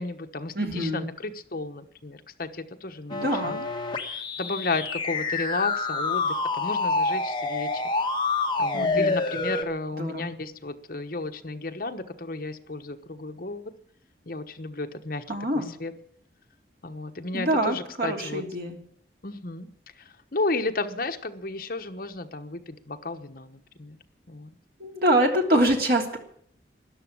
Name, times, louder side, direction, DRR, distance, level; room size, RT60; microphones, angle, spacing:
voice 1, 0.0-3.6 4.1-7.8 8.6-13.7 14.3-15.2 15.5-15.9 16.8-18.4 19.2-19.7 20.3-24.0 24.3-24.5, left 3 dB, 50° left, 7 dB, 1.1 m, -33 dB
voice 2, 0.5-1.1 3.1-3.7 8.7-9.2 10.0-10.4 15.3-15.7 17.3-18.8 24.8-26.2, right 1 dB, 55° right, 2 dB, 3.0 m, -25 dB
sound 1, 3.1-9.6, left 3 dB, 25° left, 1.6 m, -27 dB
13.5 x 11.0 x 8.6 m, 0.64 s
head